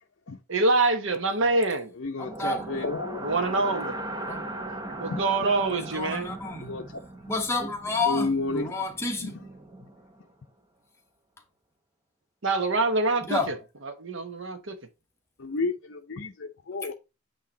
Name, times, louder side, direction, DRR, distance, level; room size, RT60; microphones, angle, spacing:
voice 1, 0.5-1.9 3.2-3.9 5.0-6.4 12.4-13.6 13.8-14.7, right 3 dB, 60° right, 0.9 m, -25 dB
voice 2, 1.9-3.3 4.2-5.2 6.6-6.9 8.1-8.7 9.2-9.3 15.4-16.9, left 3 dB, 55° left, 0.6 m, -32 dB
sound 1, 2.2-10.2, right 1 dB, 20° right, 0.7 m, -39 dB
voice 3, 5.7-6.7 7.3-9.4 13.3-13.5, left 3 dB, 10° left, 1.1 m, -30 dB
8.6 x 2.9 x 3.9 m
head